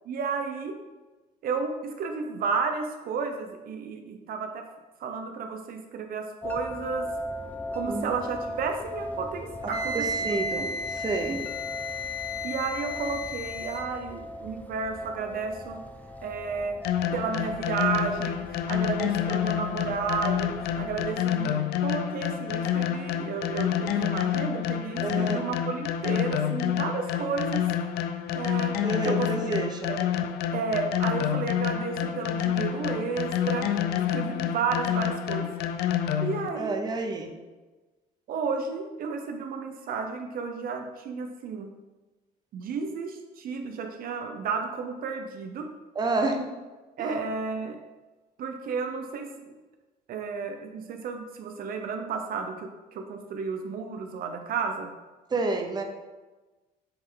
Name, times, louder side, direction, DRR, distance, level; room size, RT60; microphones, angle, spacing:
voice 1, 0.0-0.8 1.4-4.7 5.0-7.1 7.7-10.3 12.4-15.8 16.2-16.8 17.1-27.7 28.3-28.8 29.0-29.5 29.9-30.0 30.5-33.8 34.1-35.5 36.2-36.8 38.3-41.7 42.5-45.7 47.0-47.8 48.4-49.5 50.1-54.9, right 5 dB, 60° right, 5 dB, 0.7 m, -32 dB
sound 1, 6.4-21.1, equal, 10° left, 0.4 m, -39 dB
voice 2, 9.6-11.4 25.0-25.4 28.8-29.9 36.5-37.3 45.9-46.5 47.0-47.2 55.3-55.8, right 3 dB, 25° right, 3 dB, 0.7 m, -29 dB
Wind instrument woodwind instrument, 9.7-13.9, left 2 dB, 35° left, 0.9 m, -33 dB
sound 2, 16.8-36.5, left 10 dB, 75° left, 0.5 m, -28 dB
7.8 x 3.3 x 3.7 m, 1.2 s
cardioid pair, 110°, 17 cm